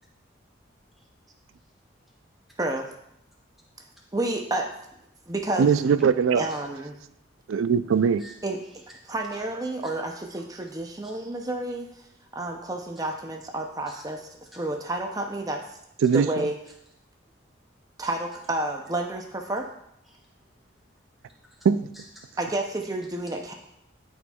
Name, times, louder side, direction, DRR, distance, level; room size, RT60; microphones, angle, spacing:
voice 1, 4.1-4.7 5.3-5.7 6.3-7.0 8.4-8.6 9.1-11.9 12.3-14.2 14.5-15.6 16.1-16.6 18.0-19.7 22.4-23.5, right 2 dB, 20° right, 2 dB, 0.5 m, -30 dB
voice 2, 5.6-6.4 7.5-8.3 16.0-16.5 21.6-21.9, right 6 dB, 85° right, 13 dB, 0.4 m, -21 dB
voice 3, 20.0-20.5 20.8-20.9 21.2-21.6 21.9-22.4, equal, ahead, -5 dB, 1.5 m, -51 dB
12.5 x 4.4 x 2.3 m, 0.79 s
head